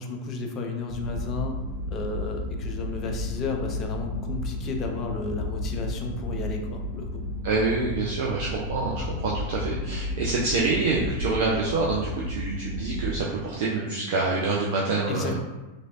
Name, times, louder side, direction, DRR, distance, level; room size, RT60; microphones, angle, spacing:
voice 1, 0.0-1.6 1.9-7.2 15.1-15.4, left 3 dB, 30° left, 3 dB, 0.4 m, -33 dB
sound 1, 0.9-13.2, left 1 dB, 70° left, 1.0 m, -33 dB
voice 2, 7.4-15.3, right 3 dB, 50° right, -3 dB, 0.4 m, -26 dB
3.0 x 2.5 x 2.3 m, 1.1 s
figure-of-eight pair, 90°, 0 cm